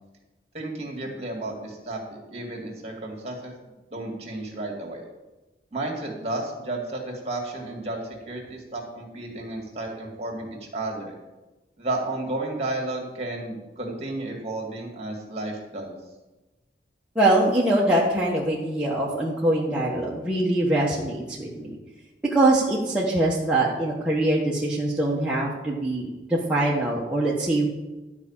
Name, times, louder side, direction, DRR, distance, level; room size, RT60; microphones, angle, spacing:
voice 1, 0.5-3.5 3.9-5.1 5.7-8.0 8.3-11.1 11.8-16.0, right 2 dB, 35° right, 0 dB, 2.3 m, -32 dB
voice 2, 17.1-21.8 22.3-27.7, right 1 dB, 5° right, -6 dB, 1.2 m, -23 dB
12.0 x 4.9 x 7.2 m, 1.1 s
head